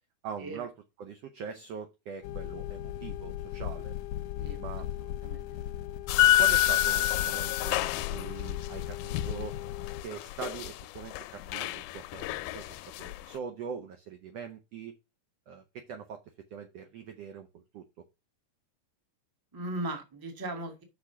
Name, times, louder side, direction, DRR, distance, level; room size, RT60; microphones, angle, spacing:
voice 1, 0.2-0.7 1.0-3.9 4.6-4.9 6.4-9.6 10.0-15.0 15.5-16.2 16.5-18.0, right 6 dB, 80° right, 8 dB, 1.4 m, -42 dB
sound 1, 2.2-10.0, left 13 dB, 75° left, 1.7 m, -29 dB
voice 2, 4.4-5.6 19.5-20.8, right 1 dB, 15° right, 5 dB, 0.7 m, -38 dB
sound 2, 6.1-13.4, left 16 dB, 90° left, 2.2 m, -36 dB
6.0 x 6.0 x 5.7 m, 0.25 s
omnidirectional pair, 3.8 m